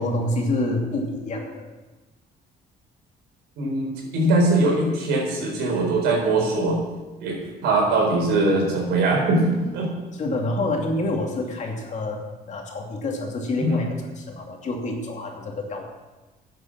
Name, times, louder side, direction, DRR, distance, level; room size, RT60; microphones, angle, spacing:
voice 1, 0.0-1.7 10.1-12.2 12.5-13.9 14.2-15.8, left 2 dB, 45° left, 1 dB, 2.6 m, -27 dB
voice 2, 3.6-6.8 7.2-9.9 13.6-13.8, right 2 dB, 85° right, 0 dB, 4.4 m, -21 dB
10.5 x 8.0 x 7.5 m, 1.2 s
cardioid pair, 110°, 17 cm